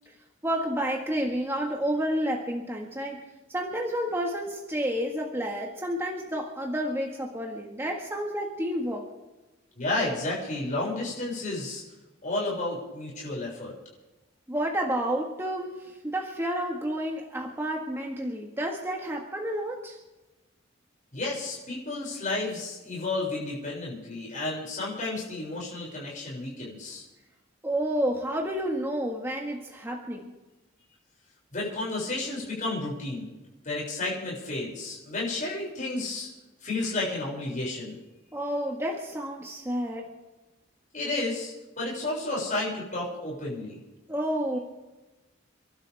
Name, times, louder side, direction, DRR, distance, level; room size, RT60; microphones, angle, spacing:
voice 1, 0.4-3.2 3.5-9.1 14.5-20.0 27.6-30.3 38.3-40.1 44.1-44.6, equal, 15° right, 0 dB, 1.8 m, -30 dB
voice 2, 9.8-11.8 12.2-13.7 21.1-27.0 31.5-33.3 33.6-36.3 36.6-38.0 40.9-43.8, left 2 dB, 40° left, -5 dB, 6.6 m, -32 dB
29.5 x 12.0 x 3.6 m, 1.1 s
head